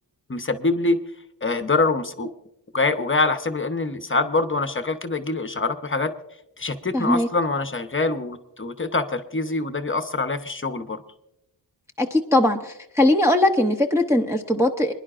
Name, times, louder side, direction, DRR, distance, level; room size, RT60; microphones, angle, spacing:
voice 1, 0.3-1.0 1.4-2.3 2.7-6.1 6.6-11.0, left 3 dB, 30° left, 9 dB, 0.8 m, -24 dB
voice 2, 6.9-7.3 12.0-14.9, left 1 dB, 5° right, 1 dB, 0.7 m, -20 dB
27.5 x 10.5 x 2.5 m, 0.85 s
wide cardioid pair, 135°, 44 cm